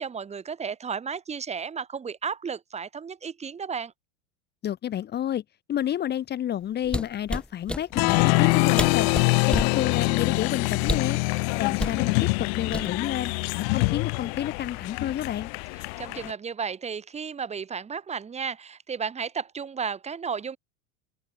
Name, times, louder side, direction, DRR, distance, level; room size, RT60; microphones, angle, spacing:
voice 1, 0.0-3.9 15.8-20.6, right 6 dB, 20° right, 5.3 m, -33 dB
voice 2, 4.6-5.4 5.7-9.1 9.5-11.2 11.6-13.3 13.7-15.5, left 11 dB, 30° left, 2.5 m, -30 dB
sound 1, 6.8-7.8 8.5-8.6 8.8-9.8 10.8-11.2 11.8-12.0 12.7-13.2 13.5-13.8, left 1 dB, 5° left, 2.4 m, -29 dB
Applause, 7.9-16.3, left 36 dB, 60° left, 3.7 m, -25 dB
supercardioid pair, 140°, 35 cm